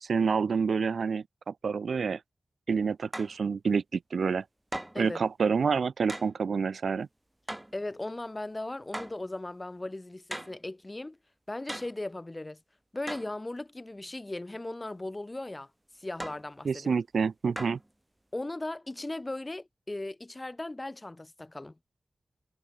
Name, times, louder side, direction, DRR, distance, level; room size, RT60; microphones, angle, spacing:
voice 1, 0.0-2.2 2.7-4.4 5.0-7.1 16.6-17.8, right 5 dB, 90° right, 0.6 m, -28 dB
sound 1, 3.1-3.4 4.7-5.1 6.1-6.4 7.5-7.8 8.9-9.2 10.3-10.6 11.7-12.0 13.1-13.4 16.2-16.5 17.6-17.9, right 1 dB, 10° right, 7.7 m, -39 dB
voice 2, 7.7-11.2 11.5-12.6 12.9-16.9 18.3-21.8, left 2 dB, 20° left, 2.0 m, -37 dB
wide cardioid pair, 120°, 0 cm